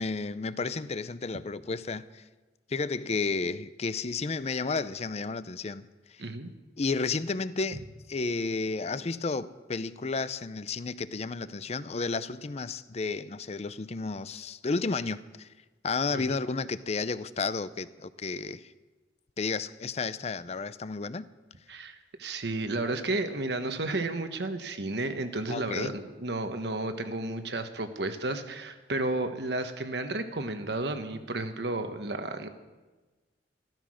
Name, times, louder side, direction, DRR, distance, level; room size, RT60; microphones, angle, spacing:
voice 1, 0.0-2.2 2.7-6.2 6.8-7.8 8.1-15.5 15.8-18.7 19.4-21.3 25.5-26.0, left 4 dB, 35° left, 15 dB, 0.5 m, -32 dB
voice 2, 6.2-6.5 16.1-16.4 21.7-32.5, right 2 dB, 65° right, 8 dB, 1.3 m, -32 dB
14.5 x 13.5 x 6.3 m, 1.2 s
head